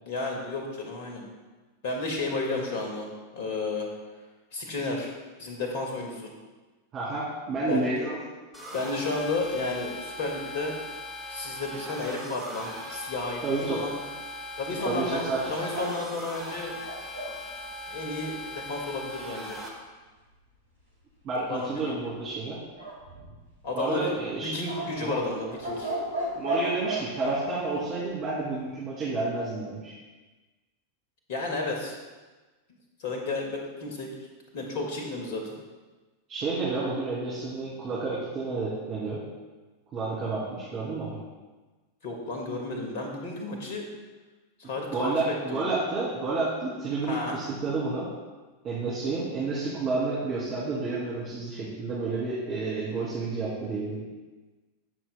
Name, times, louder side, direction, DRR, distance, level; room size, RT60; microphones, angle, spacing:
voice 1, 0.1-1.2 1.8-3.1 3.3-3.9 4.5-5.1 5.4-6.3 7.7-7.9 8.7-10.7 11.3-14.0 14.6-16.7 17.9-19.6 21.5-21.9 23.6-24.1 24.4-25.9 31.3-32.0 33.0-34.1 34.5-35.6 42.0-43.8 44.6-45.6 47.1-47.4, left 2 dB, 50° left, 1 dB, 1.9 m, -32 dB
voice 2, 6.9-8.2 13.4-13.8 14.8-15.6 21.2-22.6 23.7-24.5 25.0-25.2 26.4-29.9 36.3-39.2 39.9-41.1 44.9-48.1 48.6-54.0, right 3 dB, 35° right, -8 dB, 2.5 m, -30 dB
sound 1, 8.5-19.7, left 1 dB, 15° left, 2.0 m, -40 dB
sound 2, 14.8-17.4 22.8-23.6 24.7-27.4, right 1 dB, 75° right, 2.1 m, -34 dB
17.0 x 6.1 x 2.2 m, 1.3 s
figure-of-eight pair, 90°, 0 cm